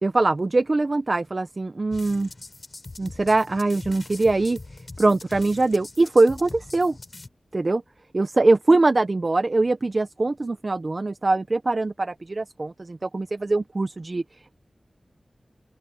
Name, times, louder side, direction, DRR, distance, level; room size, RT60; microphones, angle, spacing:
voice 1, 0.0-2.3 3.0-4.6 5.0-7.0 7.5-7.8 8.1-14.2, right 2 dB, 50° right, 0.8 m, -22 dB
sound 1, 1.9-7.3, left 2 dB, 50° left, 4.7 m, -42 dB
open air
wide cardioid pair, 70°, 0 cm